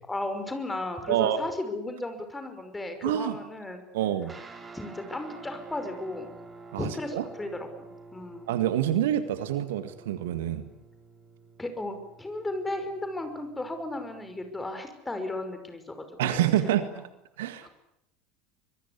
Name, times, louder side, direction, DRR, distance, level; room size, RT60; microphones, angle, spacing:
voice 1, 0.1-3.8 4.7-6.3 6.8-8.5 11.6-16.8 17.6-17.7, left 2 dB, 10° left, 7 dB, 5.6 m, -35 dB
voice 2, 1.1-1.4 3.0-3.4 3.9-4.3 6.7-7.2 8.5-10.6 16.2-17.0 17.4-17.7, right 11 dB, 65° right, 11 dB, 1.8 m, -27 dB
sound 1, 4.2-14.7, right 3 dB, 15° right, 4.7 m, -49 dB
25.0 x 22.0 x 8.5 m, 0.80 s
figure-of-eight pair, 70°, 0 cm